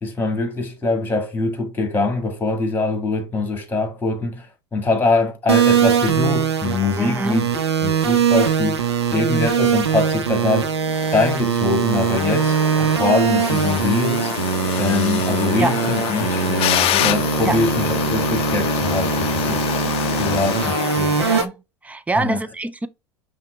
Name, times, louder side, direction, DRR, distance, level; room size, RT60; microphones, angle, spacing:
voice 1, 0.0-4.5 4.7-7.4 7.8-8.8 9.1-10.7 11.1-14.3 14.8-19.6 20.2-21.2 22.2-22.4, left 3 dB, 15° left, 1.7 m, -23 dB
sound 1, 5.5-21.4, right 7 dB, 85° right, 0.6 m, -21 dB
sound 2, 6.3-21.5, left 13 dB, 45° left, 0.5 m, -28 dB
voice 2, 7.0-7.4 15.6-15.7 17.4-17.6 21.2-21.6 21.8-22.9, right 2 dB, 10° right, 0.5 m, -24 dB
5.6 x 2.3 x 3.3 m
hypercardioid pair, 80°, 14 cm